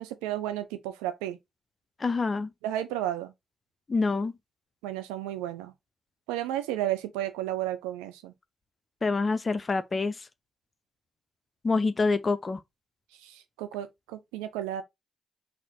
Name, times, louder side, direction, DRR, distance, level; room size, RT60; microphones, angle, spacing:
voice 1, 0.0-1.4 2.6-3.3 4.8-5.7 6.3-8.3 13.2-14.8, right 13 dB, 90° right, 0.5 m, -33 dB
voice 2, 2.0-2.5 3.9-4.3 9.0-10.3 11.6-12.6, left 3 dB, 40° left, 0.5 m, -26 dB
4.2 x 2.8 x 4.2 m
hypercardioid pair, 45°, 0 cm